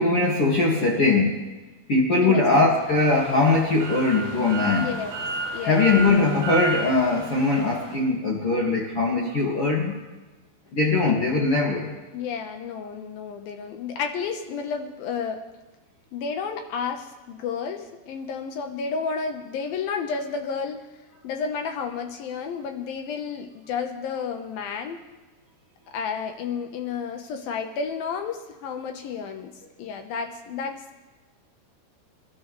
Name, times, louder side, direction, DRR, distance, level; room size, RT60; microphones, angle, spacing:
voice 1, 0.0-1.4 1.9-4.9 5.7-10.0 10.7-12.0, left 3 dB, 45° left, -3 dB, 2.1 m, -21 dB
sound 1, 2.7-8.0, right 3 dB, 60° right, 7.5 m, -32 dB
voice 2, 4.8-5.1 5.5-6.0 11.1-11.3 12.1-15.4 16.1-20.9 21.2-25.0 25.9-29.5 29.8-31.0, left 6 dB, 70° left, 5 dB, 2.5 m, -31 dB
28.5 x 12.5 x 3.2 m, 1.1 s
omnidirectional pair, 4.9 m